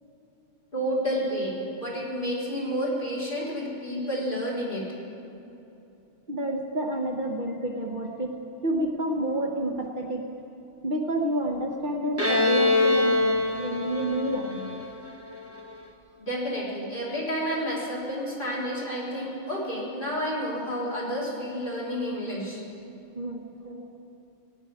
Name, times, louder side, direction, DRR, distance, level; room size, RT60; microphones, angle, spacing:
voice 1, 0.7-4.9 16.2-22.6 23.6-23.8, equal, 40° left, -6 dB, 3.8 m, -30 dB
voice 2, 6.3-10.3 10.8-14.8 23.1-23.5, right 1 dB, 45° right, 1 dB, 1.0 m, -29 dB
Bowed string instrument, 12.2-15.7, left 3 dB, 15° right, 1.0 m, -24 dB
18.0 x 6.3 x 9.6 m, 2.9 s
omnidirectional pair, 1.3 m